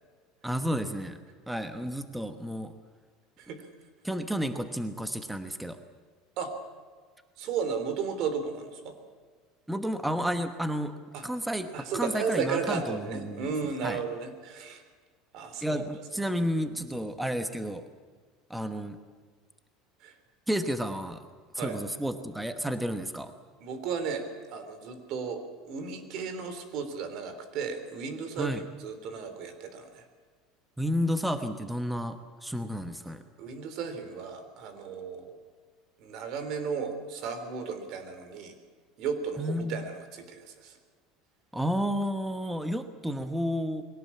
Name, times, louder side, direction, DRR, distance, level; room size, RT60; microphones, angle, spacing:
voice 1, 0.4-1.2 1.5-2.7 4.0-5.8 9.7-10.9 11.2-13.5 13.8-14.0 15.6-17.8 18.5-19.0 20.5-21.2 21.5-23.3 28.4-28.6 30.8-32.2 32.4-33.2 39.4-39.8 41.5-43.8, equal, 5° right, 8 dB, 1.1 m, -31 dB
voice 2, 7.4-9.0 11.1-11.2 11.7-14.8 15.3-15.8 20.0-20.2 21.6-21.8 23.6-30.0 33.4-35.4 36.0-38.6 39.0-40.7, right 5 dB, 50° right, 9 dB, 3.6 m, -34 dB
22.5 x 18.0 x 8.6 m, 1.5 s
cardioid pair, 160°, 0 cm